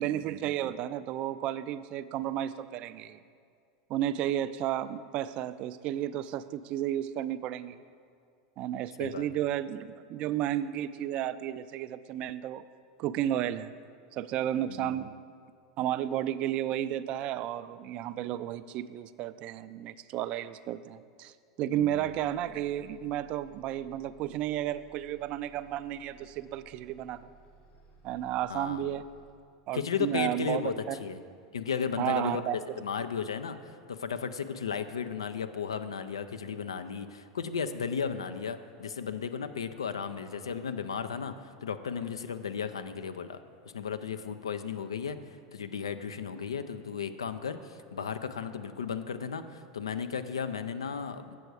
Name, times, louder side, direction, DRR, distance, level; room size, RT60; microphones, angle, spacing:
voice 1, 0.0-3.2 3.9-7.8 8.6-12.7 13.0-13.7 14.1-15.1 15.8-27.3 28.0-29.0 29.7-31.0 32.0-32.6, right 12 dB, 45° right, 14 dB, 0.3 m, -32 dB
voice 2, 14.7-15.0 21.6-22.2 28.5-28.9 29.7-31.2 31.5-32.4 32.8-43.4 43.7-51.4, left 6 dB, 85° left, 10 dB, 0.4 m, -35 dB
Bus, 21.8-29.3, right 4 dB, 50° left, 1.7 m, -59 dB
7.7 x 6.8 x 4.7 m, 2.2 s
hypercardioid pair, 90°, 3 cm